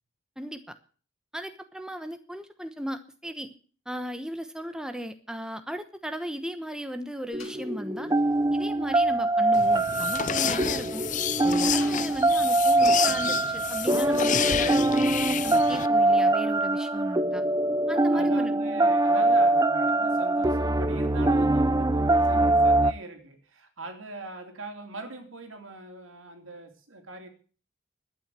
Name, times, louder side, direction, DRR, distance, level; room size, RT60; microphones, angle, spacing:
voice 1, 0.4-0.7 1.3-3.5 3.9-8.1 8.5-11.1 11.4-15.1 15.4-17.4 17.9-18.5, equal, 5° right, 1.0 m, -36 dB
sound 1, 7.3-9.7 10.2-13.0, left 4 dB, 85° left, 2.9 m, -51 dB
sound 2, 7.3-22.9, right 2 dB, 20° right, 0.7 m, -23 dB
sound 3, 9.5-15.9, left 8 dB, 40° left, 0.6 m, -30 dB
voice 2, 17.9-27.3, right 2 dB, 80° right, 3.0 m, -41 dB
12.0 x 9.1 x 9.0 m
head